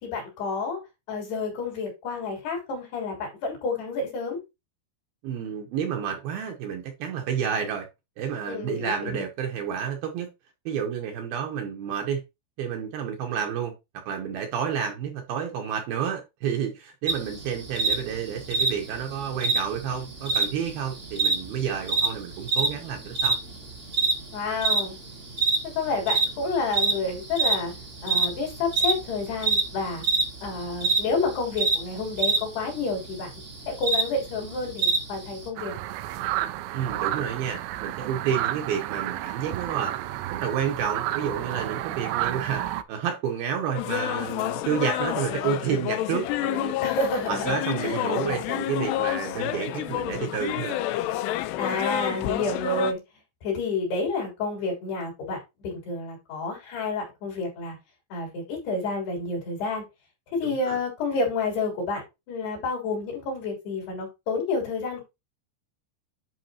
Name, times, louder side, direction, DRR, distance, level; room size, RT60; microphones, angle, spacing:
voice 1, 0.0-0.8 1.1-4.4 8.5-9.2 13.3-13.4 24.3-25.0 25.8-27.7 28.0-30.0 30.4-33.3 33.7-35.7 36.9-37.2 46.8-48.1 51.6-53.0 53.4-57.8 58.1-59.8 60.3-65.0, left 3 dB, 65° left, 5.2 m, -29 dB
voice 2, 5.2-7.9 8.2-10.3 10.7-12.2 12.6-13.7 14.1-23.4 36.7-40.0 40.3-46.7 47.3-50.8 60.7-60.8, right 8 dB, 70° right, 2.5 m, -30 dB
sound 1, 17.1-35.5, right 4 dB, 50° right, 0.8 m, -27 dB
sound 2, 35.6-42.8, right 14 dB, 90° right, 2.9 m, -31 dB
sound 3, 43.8-52.9, left 14 dB, 85° left, 2.6 m, -29 dB
10.5 x 4.8 x 2.8 m
omnidirectional pair, 5.1 m